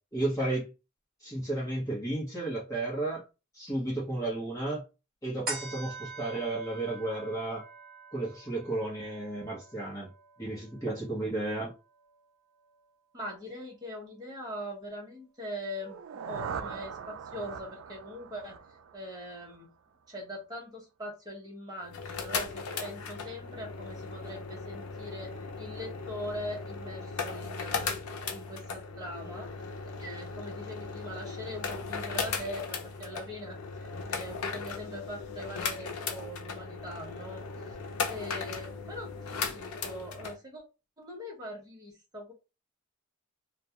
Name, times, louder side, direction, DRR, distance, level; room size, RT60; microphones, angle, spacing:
voice 1, 0.1-0.7 1.2-3.2 3.5-4.8 5.2-7.6 8.1-10.1 10.4-11.7, right 2 dB, 15° left, 0.8 m, -33 dB
sound 1, 5.5-12.2 12.7-12.8, right 3 dB, 40° right, 1.1 m, -44 dB
voice 2, 13.1-16.0 16.2-18.6 18.9-19.7 20.1-28.0 28.3-29.5 30.0-37.4 37.7-37.8 38.1-40.6 41.0-42.3, equal, 20° right, 0.8 m, -42 dB
sound 2, 15.7-19.7, right 6 dB, 65° right, 0.3 m, -41 dB
sound 3, 21.8-40.4, left 5 dB, 85° left, 0.5 m, -37 dB
2.3 x 2.2 x 2.8 m
head